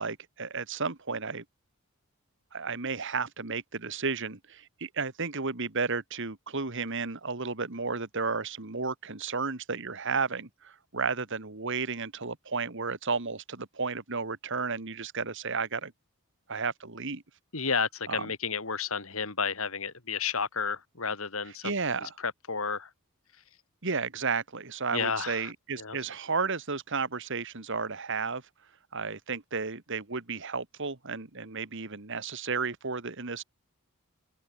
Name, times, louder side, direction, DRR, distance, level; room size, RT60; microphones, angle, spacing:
voice 1, 0.0-1.4 2.5-15.9 16.5-17.2 18.1-18.3 21.6-22.1 23.8-28.4 28.9-33.4, right 4 dB, 60° right, 1.9 m, -33 dB
voice 2, 17.5-21.7 22.0-22.9 24.9-25.5 25.8-26.0, left 5 dB, 70° left, 3.0 m, -32 dB
head